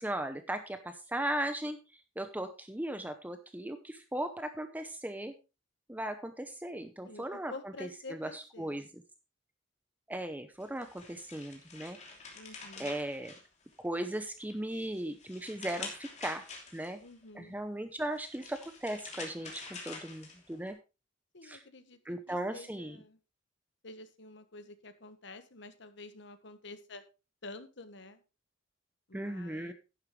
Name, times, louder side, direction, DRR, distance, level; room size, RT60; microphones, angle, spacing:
voice 1, 0.0-1.8 2.2-5.3 5.9-7.5 7.8-8.9 10.1-12.0 12.8-13.3 13.8-16.4 16.7-17.0 17.3-20.8 21.4-21.6 22.1-23.0 29.1-29.7, right 1 dB, 10° right, 8 dB, 0.7 m, -37 dB
voice 2, 7.0-8.9 12.3-12.9 17.0-17.6 21.3-23.2 23.8-27.0 27.4-28.2 29.1-29.7, left 2 dB, 65° left, 10 dB, 1.4 m, -49 dB
sound 1, 10.6-14.0 14.4-17.1 18.0-20.7, left 4 dB, 35° left, 3.1 m, -47 dB
11.0 x 10.5 x 3.2 m, 0.29 s
head